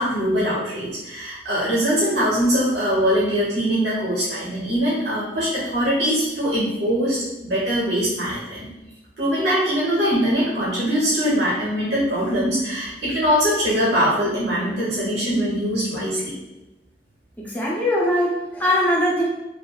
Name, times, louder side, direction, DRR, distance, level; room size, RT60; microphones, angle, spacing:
voice 1, 0.0-8.7 9.2-16.3, equal, 70° right, -7 dB, 1.0 m, -22 dB
voice 2, 17.4-19.2, equal, 10° left, -4 dB, 0.6 m, -21 dB
3.2 x 2.5 x 2.3 m, 0.99 s
head